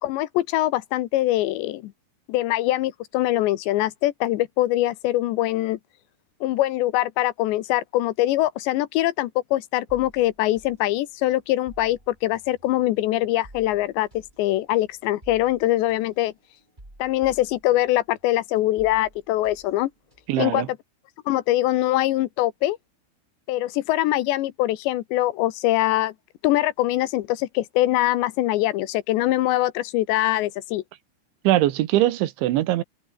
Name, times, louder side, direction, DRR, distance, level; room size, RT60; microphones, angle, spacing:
voice 1, 0.0-1.9 2.3-5.8 6.4-14.1 14.4-16.3 17.0-19.9 20.4-20.7 21.3-22.8 23.5-26.1 26.4-30.8, left 15 dB, 75° left, 3.1 m, -23 dB
sound 1, 9.9-18.3 18.5-20.5, right 1 dB, 10° right, 6.8 m, -51 dB
voice 2, 20.3-20.7 31.5-32.8, right 14 dB, 80° right, 3.7 m, -21 dB
omnidirectional pair, 5.4 m